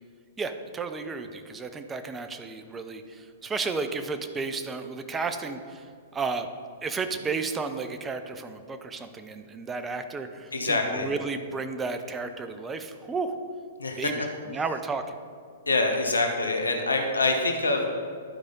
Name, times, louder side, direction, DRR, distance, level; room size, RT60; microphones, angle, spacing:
voice 1, 0.4-5.9 6.1-6.5 6.8-13.4 14.0-15.2, right 4 dB, 15° right, 8 dB, 0.5 m, -33 dB
voice 2, 10.5-11.1 13.8-14.1 15.7-17.9, left 2 dB, 80° left, 3 dB, 1.0 m, -25 dB
11.5 x 4.9 x 4.0 m, 2.2 s
figure-of-eight pair, 110°, 0 cm